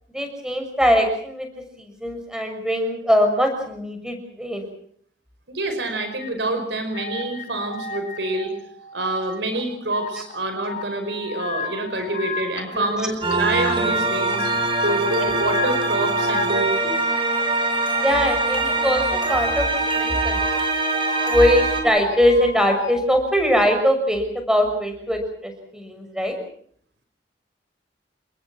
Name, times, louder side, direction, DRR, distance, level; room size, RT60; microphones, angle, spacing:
voice 1, 0.1-1.5 1.8-4.7 12.7-13.1 15.2-15.3 17.9-20.4 21.2-26.4, equal, 5° right, 5 dB, 6.5 m, -21 dB
voice 2, 5.5-8.5 8.9-14.5 14.8-17.0, right 2 dB, 80° right, 6 dB, 5.3 m, -26 dB
sound 1, 6.2-6.3 6.9-9.2 9.5-10.3 10.7-14.0 14.2-19.6 20.2-20.5 20.9-22.9, left 4 dB, 45° left, 5.9 m, -34 dB
sound 2, 13.2-21.8, right 3 dB, 30° right, 6.1 m, -23 dB
30.0 x 20.5 x 6.1 m, 0.62 s
head